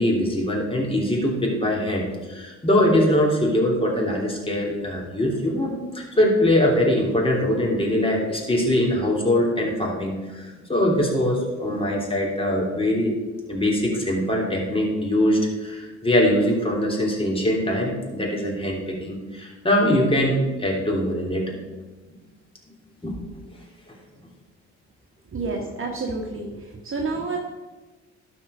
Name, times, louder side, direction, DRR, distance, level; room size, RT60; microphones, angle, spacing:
voice 1, 0.0-13.1 13.5-21.6 23.0-23.1 27.1-27.2, left 1 dB, 15° left, -2 dB, 3.0 m, -22 dB
voice 2, 25.3-26.6 26.8-27.4, right 3 dB, 40° right, 1 dB, 1.4 m, -29 dB
12.0 x 4.7 x 5.0 m, 1.2 s
hypercardioid pair, 50°, 33 cm